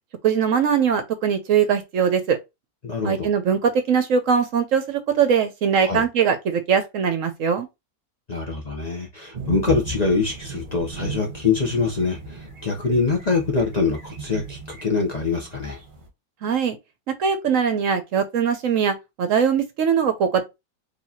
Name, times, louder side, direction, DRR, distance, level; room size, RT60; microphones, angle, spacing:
voice 1, 0.2-2.4 3.0-7.7 16.4-16.8 17.2-20.4, right 7 dB, 65° right, 1.0 m, -21 dB
voice 2, 2.8-3.3 5.8-6.0 8.3-15.8, left 4 dB, 35° left, 0.8 m, -24 dB
sound 1, 9.3-16.1, right 2 dB, 35° right, 1.2 m, -36 dB
4.6 x 3.1 x 2.8 m
omnidirectional pair, 1.6 m